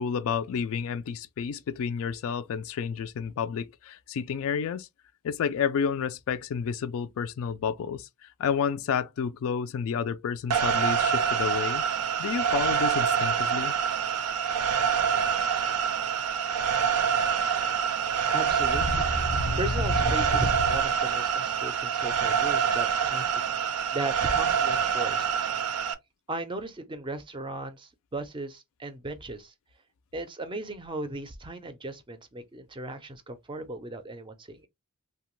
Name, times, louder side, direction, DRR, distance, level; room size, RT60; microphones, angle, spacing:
voice 1, 0.0-4.9 5.2-11.8 12.2-13.7, left 7 dB, 65° left, 0.3 m, -30 dB
sound 1, 10.5-25.9, right 7 dB, 80° right, 0.4 m, -26 dB
voice 2, 18.3-19.1 19.5-25.3 26.3-29.5 30.1-34.7, right 2 dB, 20° right, 0.4 m, -37 dB
sound 2, 18.5-21.3, left 1 dB, 90° left, 0.7 m, -31 dB
2.8 x 2.2 x 3.0 m
head